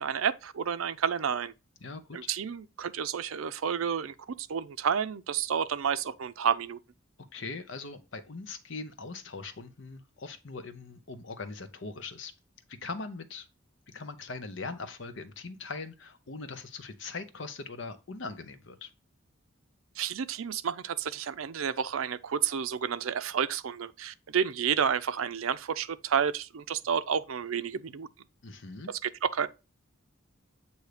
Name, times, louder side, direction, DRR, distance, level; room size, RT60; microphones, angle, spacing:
voice 1, 0.0-1.5 2.1-6.8 20.0-28.1 28.9-29.5, right 7 dB, 80° right, 0.5 m, -30 dB
voice 2, 1.8-2.3 7.3-12.3 12.7-13.5 13.9-18.9 28.4-28.9, left 3 dB, 60° left, 0.8 m, -41 dB
7.9 x 2.8 x 4.9 m
head